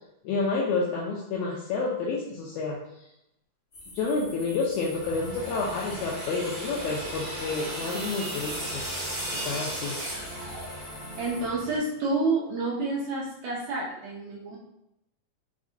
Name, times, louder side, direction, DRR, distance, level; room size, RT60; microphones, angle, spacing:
voice 1, 0.2-2.8 3.9-8.8 9.3-10.0, left 4 dB, 85° left, -3 dB, 1.7 m, -29 dB
sound 1, 3.7-11.5, left 1 dB, 50° left, 1.0 m, -47 dB
sound 2, 4.9-11.8, equal, 65° left, 1.8 m, -43 dB
sound 3, 5.2-11.1, right 1 dB, 45° right, 1.1 m, -36 dB
voice 2, 11.2-14.6, right 3 dB, 80° right, -5 dB, 1.6 m, -29 dB
5.2 x 3.6 x 2.6 m, 0.83 s
omnidirectional pair, 4.1 m